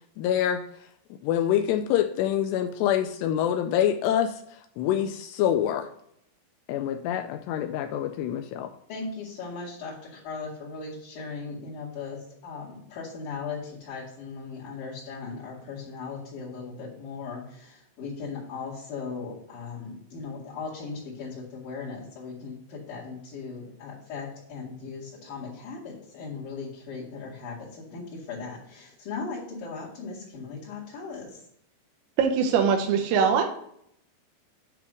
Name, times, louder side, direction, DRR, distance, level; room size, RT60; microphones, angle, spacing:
voice 1, 0.2-0.6 1.2-4.3 4.8-5.9 6.7-8.7, left 10 dB, 85° left, 8 dB, 2.4 m, -25 dB
voice 2, 8.9-31.4, left 4 dB, 55° left, -8 dB, 3.2 m, -38 dB
voice 3, 32.2-33.4, right 6 dB, 85° right, 4 dB, 3.1 m, -22 dB
9.7 x 3.3 x 6.2 m, 0.71 s
omnidirectional pair, 5.2 m